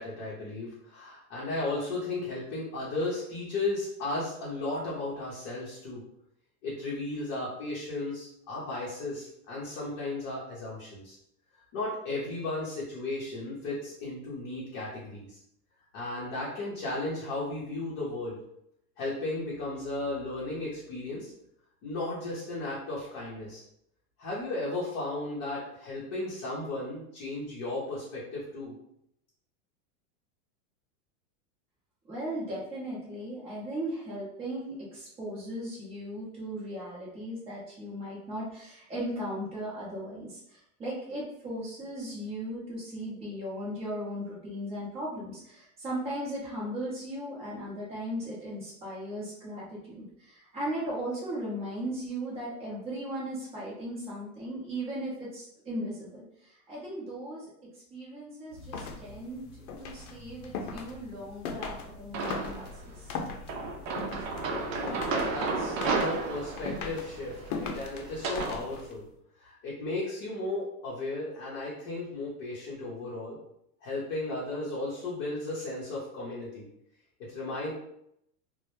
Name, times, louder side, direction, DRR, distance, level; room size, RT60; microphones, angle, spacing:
voice 1, 0.0-6.0 6.6-11.2 11.7-15.4 15.9-18.4 19.0-21.3 21.8-23.6 24.2-28.7 64.5-69.0 69.4-73.4 73.8-76.7 77.2-77.7, left 2 dB, 35° left, -7 dB, 0.6 m, -35 dB
voice 2, 32.0-57.5 57.9-59.4 59.8-63.1, right 1 dB, 15° right, -6 dB, 0.6 m, -37 dB
sound 1, 58.5-69.0, left 4 dB, 80° left, 0.6 m, -40 dB
sound 2, 62.1-62.8 63.5-68.6, right 4 dB, 65° right, 0.5 m, -33 dB
2.0 x 2.0 x 2.9 m, 0.75 s
supercardioid pair, 150°, 44 cm